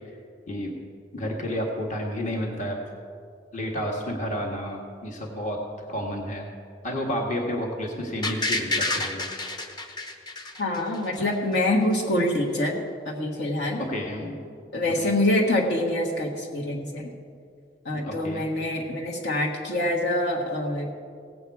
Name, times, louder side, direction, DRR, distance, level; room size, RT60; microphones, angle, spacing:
voice 1, 1.1-2.8 3.5-5.6 5.9-6.5 6.8-9.3 13.8-14.4 17.9-18.4, equal, 40° left, 0 dB, 1.6 m, -30 dB
sound 1, 8.2-11.2 11.5-11.6, left 2 dB, 25° left, 0.9 m, -29 dB
voice 2, 10.6-12.7 13.0-13.8 14.7-17.1 17.8-20.9, left 1 dB, 65° left, -2 dB, 1.6 m, -25 dB
17.5 x 7.9 x 4.8 m, 2.3 s
head